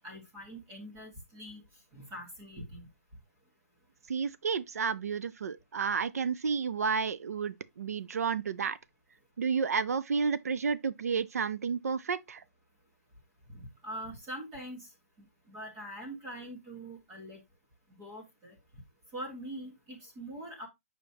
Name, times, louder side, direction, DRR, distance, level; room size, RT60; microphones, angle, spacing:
voice 1, 0.0-1.6 1.9-2.9 13.5-14.9 15.5-17.4 17.9-18.5 19.1-20.7, right 1 dB, 15° right, 1.4 m, -43 dB
voice 2, 4.1-8.8 9.4-12.4, right 5 dB, 75° right, 0.6 m, -31 dB
7.1 x 5.1 x 2.8 m
hypercardioid pair, 175°, 8 cm